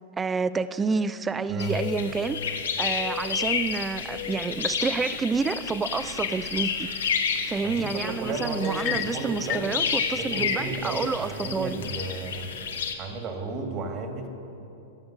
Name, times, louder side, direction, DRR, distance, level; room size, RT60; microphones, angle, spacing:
voice 1, 0.2-2.4 2.8-6.9 7.5-11.8, right 4 dB, 15° right, 15 dB, 0.4 m, -29 dB
voice 2, 1.5-1.8 7.6-9.8 10.1-12.5 13.0-14.3, right 3 dB, 40° right, 4 dB, 1.8 m, -33 dB
sound 1, 1.6-12.9, left 6 dB, 80° left, 1.1 m, -31 dB
sound 2, 8.6-9.8, left 11 dB, 40° left, 0.5 m, -32 dB
17.0 x 7.0 x 6.4 m, 2.9 s
hypercardioid pair, 105°, 0 cm